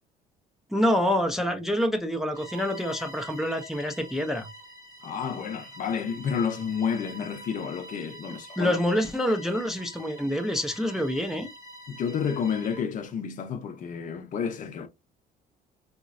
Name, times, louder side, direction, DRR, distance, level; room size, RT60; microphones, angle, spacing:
voice 1, 0.7-4.5 8.3-11.5, equal, ahead, 0.4 m, -27 dB
Bowed string instrument, 2.3-12.9, equal, 20° right, 0.9 m, -46 dB
voice 2, 5.0-8.8 11.9-14.9, left 7 dB, 50° left, 0.5 m, -30 dB
3.7 x 2.1 x 2.4 m
cardioid pair, 110°, 17 cm